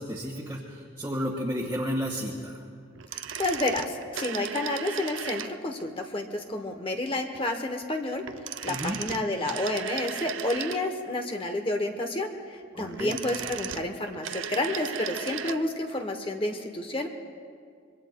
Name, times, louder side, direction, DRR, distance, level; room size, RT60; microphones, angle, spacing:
voice 1, 0.0-2.6 8.7-9.0 12.7-13.2, equal, 10° right, -5 dB, 1.4 m, -32 dB
sound 1, 3.0-5.8 8.2-11.1 12.8-15.6 15.9-16.0, right 8 dB, 75° right, 0.6 m, -36 dB
voice 2, 3.4-8.2 8.6-17.1, left 2 dB, 25° left, 4 dB, 0.8 m, -30 dB
25.5 x 22.5 x 2.2 m, 2.1 s
head